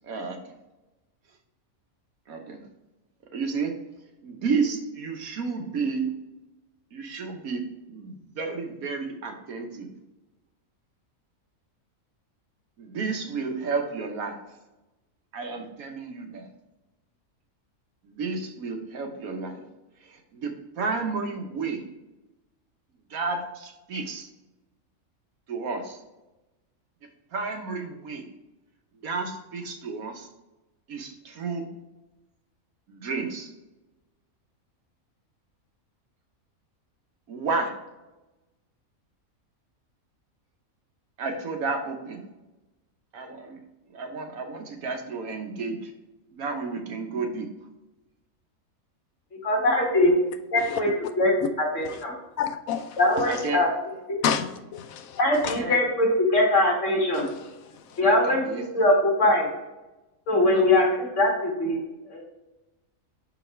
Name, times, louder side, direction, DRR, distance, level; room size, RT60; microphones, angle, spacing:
voice 1, 0.0-0.4 2.3-2.6 3.3-3.8 4.2-6.1 6.9-9.9 12.8-14.4 15.3-16.5 18.0-19.6 20.0-21.8 23.1-24.3 25.5-26.0 27.3-28.3 29.0-30.3 30.9-31.7 32.9-33.5 37.3-37.7 41.2-42.2 43.1-43.6 43.9-45.9 46.3-47.5 53.3-53.6 55.4-55.8 58.0-58.6 60.5-60.6, right 4 dB, 80° right, 1.4 m, -31 dB
voice 2, 49.4-50.1 50.5-50.9 51.2-52.1 53.0-53.7 54.1-54.2 55.2-57.3 58.0-59.5 60.3-61.8 62.1-62.2, left 1 dB, 55° left, 2.3 m, -22 dB
voice 3, 52.4-53.3 54.2-55.6 57.1-58.0, left 8 dB, 75° left, 1.1 m, -31 dB
6.0 x 4.7 x 3.3 m
omnidirectional pair, 1.5 m